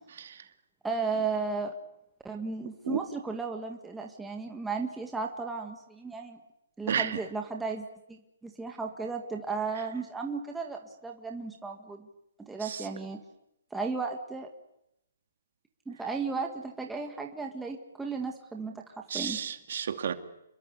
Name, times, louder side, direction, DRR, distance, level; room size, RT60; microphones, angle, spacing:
voice 1, 0.8-1.7 2.2-6.4 6.8-12.1 12.4-13.2 13.7-14.5 15.9-18.8 19.1-19.4, right 4 dB, 5° right, 1.8 m, -35 dB
voice 2, 6.9-7.2 12.6-12.8 19.1-20.1, right 8 dB, 55° right, 2.6 m, -31 dB
28.5 x 22.5 x 8.2 m
hypercardioid pair, 170°, 0 cm